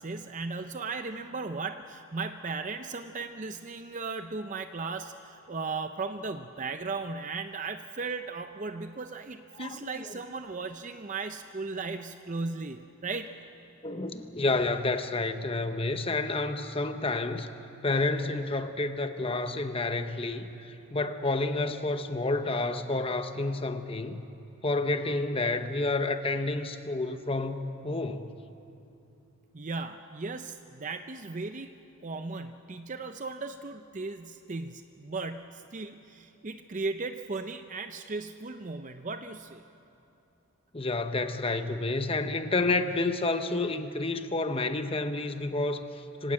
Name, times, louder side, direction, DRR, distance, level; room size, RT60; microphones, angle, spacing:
voice 1, 0.0-13.3 29.5-39.6, right 3 dB, 35° right, 8 dB, 0.6 m, -36 dB
voice 2, 9.6-9.9 13.8-17.5 17.8-24.2 24.6-28.3 40.7-46.3, left 2 dB, 25° left, 8 dB, 0.9 m, -30 dB
25.5 x 17.0 x 8.9 m, 2.8 s
head